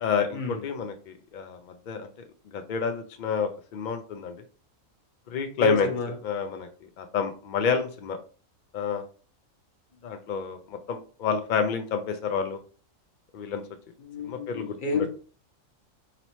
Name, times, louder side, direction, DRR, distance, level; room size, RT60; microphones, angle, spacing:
voice 1, 0.0-1.6 1.9-2.1 2.5-4.4 5.3-5.9 6.2-6.7 7.0-8.2 8.7-9.0 10.0-12.6 13.3-13.6 14.2-15.1, left 6 dB, 85° left, 6 dB, 0.4 m, -29 dB
voice 2, 5.6-6.1 14.0-15.1, left 2 dB, 45° left, 4 dB, 0.8 m, -29 dB
4.1 x 2.9 x 3.0 m, 0.38 s
omnidirectional pair, 1.4 m